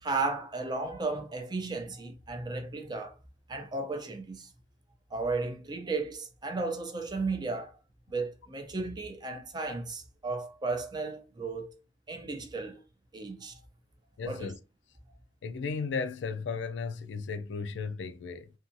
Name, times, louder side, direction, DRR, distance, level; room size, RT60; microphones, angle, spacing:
voice 1, 0.0-3.1 3.5-4.5 5.1-7.7 8.1-11.8 12.1-12.8 13.1-13.6 14.2-14.5, right 3 dB, 25° right, 0.4 m, -34 dB
voice 2, 14.2-14.6 15.4-18.5, left 5 dB, 75° left, 0.3 m, -35 dB
2.7 x 2.3 x 2.5 m
head